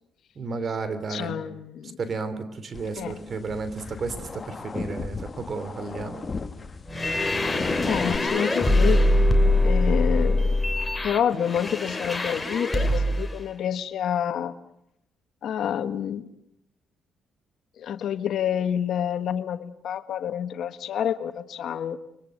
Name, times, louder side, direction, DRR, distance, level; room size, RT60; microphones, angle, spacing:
voice 1, 0.3-1.4 1.8-6.2, right 4 dB, 45° right, 12 dB, 3.3 m, -32 dB
voice 2, 1.1-2.0 3.0-3.2 7.8-9.1 9.6-10.6 11.0-14.5 15.4-16.2 17.8-22.0, left 9 dB, 70° left, 11 dB, 1.5 m, -28 dB
sound 1, 2.7-8.2, left 4 dB, 30° left, 1.7 m, -35 dB
sound 2, 6.9-13.3, left 1 dB, 15° left, 3.0 m, -23 dB
30.0 x 23.0 x 6.7 m, 0.77 s
cardioid pair, 90°, 0 cm